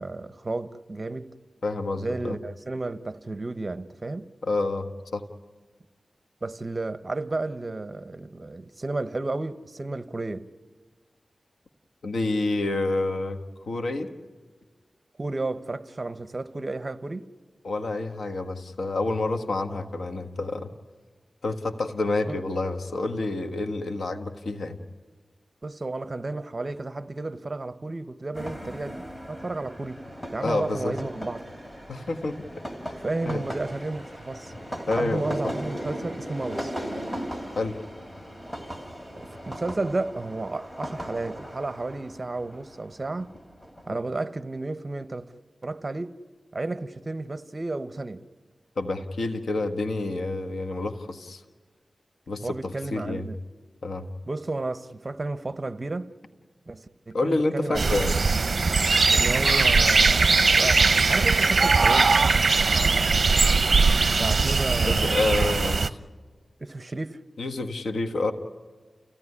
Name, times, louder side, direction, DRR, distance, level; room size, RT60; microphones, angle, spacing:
voice 1, 0.0-1.3 2.0-4.3 6.4-10.5 15.2-17.3 22.3-22.4 25.6-30.0 30.3-31.5 33.0-34.5 34.9-36.7 39.2-43.3 43.9-45.3 45.6-46.2 46.5-48.2 52.4-53.4 54.3-56.1 56.7-58.0 59.1-62.2 62.6-63.1 64.1-65.1 65.6-65.7 66.6-67.2, right 2 dB, 40° right, 1.0 m, -32 dB
voice 2, 1.6-2.4 4.4-5.2 12.0-13.4 13.7-14.1 17.6-20.7 21.4-24.8 30.4-30.9 31.9-32.4 33.2-33.4 34.9-35.3 37.5-37.8 48.8-51.4 52.3-52.5 52.9-53.3 53.8-54.1 57.1-58.2 64.8-65.8 67.4-68.3, left 2 dB, 80° left, 1.5 m, -28 dB
sound 1, 28.3-43.9, equal, 15° left, 3.1 m, -37 dB
sound 2, 57.8-65.9, right 4 dB, 60° right, 0.7 m, -20 dB
30.0 x 16.5 x 9.8 m
cardioid pair, 55°, 0 cm